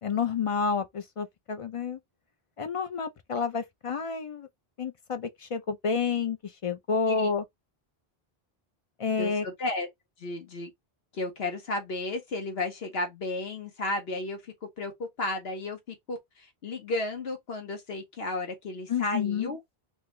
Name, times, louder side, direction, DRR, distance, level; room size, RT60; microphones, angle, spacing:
voice 1, 0.0-2.0 2.6-4.5 4.8-6.4 6.6-7.4 9.0-9.5 18.9-19.5, left 5 dB, 55° left, 0.4 m, -29 dB
voice 2, 9.2-9.9 10.2-10.7 11.1-14.9 15.2-19.6, left 2 dB, 75° left, 1.4 m, -33 dB
3.3 x 2.5 x 3.2 m
omnidirectional pair, 1.0 m